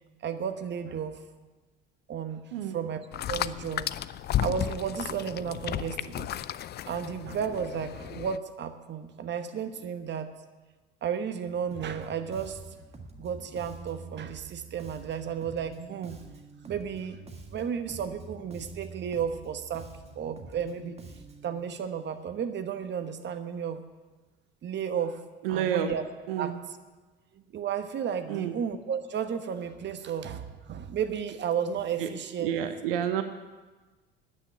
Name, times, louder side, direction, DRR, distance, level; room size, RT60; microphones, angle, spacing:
voice 1, 0.2-1.2 2.1-3.0 3.3-3.9 4.4-6.3 6.9-10.3 11.0-12.6 13.2-16.2 16.6-17.2 17.5-19.9 20.2-21.0 21.4-23.8 24.6-25.2 25.5-26.0 26.4-26.6 27.3-32.5, right 7 dB, 40° right, 9 dB, 1.1 m, -33 dB
sound 1, 3.1-8.4, left 12 dB, 35° left, 0.5 m, -33 dB
Bass guitar, 11.7-21.6, right 4 dB, 20° right, 1.7 m, -46 dB
voice 2, 25.4-25.9 26.3-26.5 28.3-28.6 32.0-32.1 32.4-33.2, right 10 dB, 75° right, 9 dB, 0.9 m, -29 dB
9.9 x 8.7 x 9.4 m, 1.3 s
hypercardioid pair, 65°, 29 cm